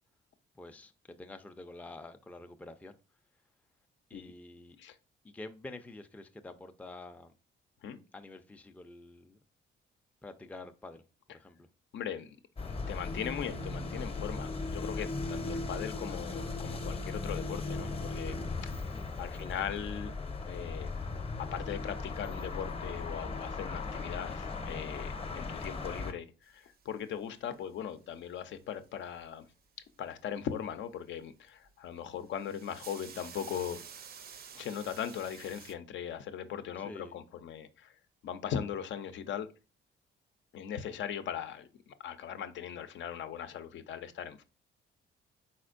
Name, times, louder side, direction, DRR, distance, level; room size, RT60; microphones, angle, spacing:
voice 1, 0.5-3.0 4.1-4.8 5.2-7.3 8.1-9.4 10.2-11.0 11.3-11.7 18.9-19.7 36.8-37.2, left 2 dB, 5° left, 0.4 m, -48 dB
voice 2, 11.9-12.4 12.7-18.4 18.6-18.9 19.2-20.1 20.5-20.9 21.4-29.4 30.0-33.8 34.6-37.9 38.2-39.5 40.5-44.4, left 8 dB, 70° left, 0.6 m, -39 dB
sound 1, 12.6-26.1, left 3 dB, 30° left, 0.8 m, -37 dB
sound 2, 26.5-27.5 28.8-29.3 31.5-31.7 32.0-35.7, right 7 dB, 50° right, 0.6 m, -50 dB
4.3 x 4.3 x 2.5 m
cardioid pair, 90°, 20 cm